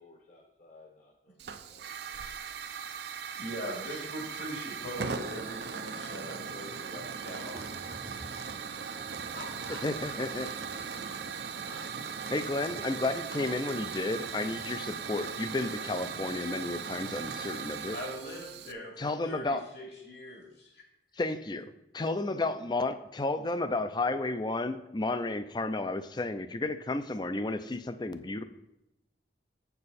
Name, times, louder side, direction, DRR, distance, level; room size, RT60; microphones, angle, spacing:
voice 1, 0.0-2.3, left 3 dB, 40° left, -2 dB, 1.0 m, -58 dB
Hiss / Fire, 1.4-18.7, right 6 dB, 65° right, 0.5 m, -39 dB
voice 2, 3.3-8.1 8.7-12.2 17.9-20.8, equal, 70° left, -1 dB, 2.4 m, -43 dB
sound 1, 7.5-12.4 12.7-12.8, right 1 dB, 15° right, 0.7 m, -51 dB
voice 3, 9.8-10.5 12.3-18.0 19.0-19.6 21.1-28.4, left 2 dB, 25° left, 11 dB, 0.5 m, -32 dB
7.6 x 6.9 x 4.2 m, 0.85 s
head